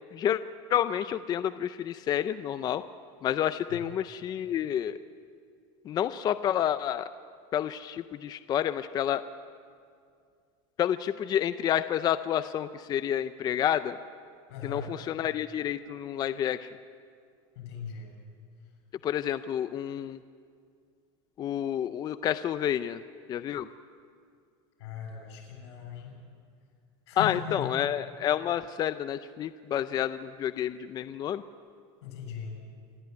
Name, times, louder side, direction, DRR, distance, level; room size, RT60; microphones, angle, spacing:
voice 1, 0.7-2.8 3.2-5.0 5.9-7.1 7.5-9.2 10.8-14.0 14.6-16.7 19.0-20.2 21.4-23.0 23.3-23.7 27.2-31.4, left 10 dB, 30° left, 12 dB, 0.5 m, -29 dB
voice 2, 14.5-15.0 17.6-18.2 24.8-26.2 27.1-27.8 32.0-32.6, left 7 dB, 85° left, 3 dB, 7.1 m, -39 dB
27.0 x 13.0 x 9.5 m, 2.2 s
supercardioid pair, 150°, 14 cm